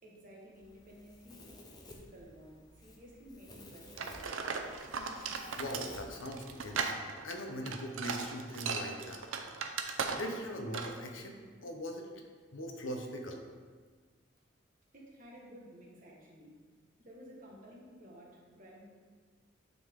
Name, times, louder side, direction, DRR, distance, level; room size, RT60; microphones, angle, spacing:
voice 1, 0.0-4.6 14.9-16.5 17.0-18.9, equal, 45° right, -4 dB, 1.5 m, -54 dB
Domestic sounds home sounds, 0.5-6.8, left 1 dB, 20° left, 0.7 m, -55 dB
sound 1, 4.0-10.5 10.7-11.0, right 5 dB, 90° right, 0.6 m, -37 dB
voice 2, 5.6-6.9 7.2-9.2 10.1-12.1 12.5-13.4, equal, 85° left, 2 dB, 0.9 m, -41 dB
9.2 x 3.9 x 3.7 m, 1.5 s
head